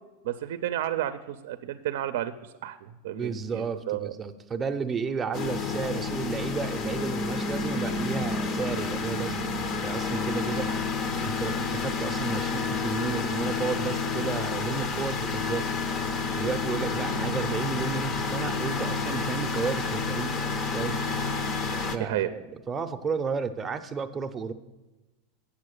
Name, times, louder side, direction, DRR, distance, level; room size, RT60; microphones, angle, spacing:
voice 1, 0.2-2.3 2.6-4.1 10.7-10.8 22.0-22.3, right 12 dB, 70° right, 11 dB, 0.5 m, -31 dB
voice 2, 3.1-10.7 11.2-15.7 16.3-20.4 20.7-21.0 21.9-24.5, right 5 dB, 20° right, 7 dB, 0.6 m, -32 dB
sound 1, 5.3-22.0, left 4 dB, 35° left, 0.7 m, -29 dB
8.4 x 7.0 x 6.6 m, 1.1 s
supercardioid pair, 140°, 0 cm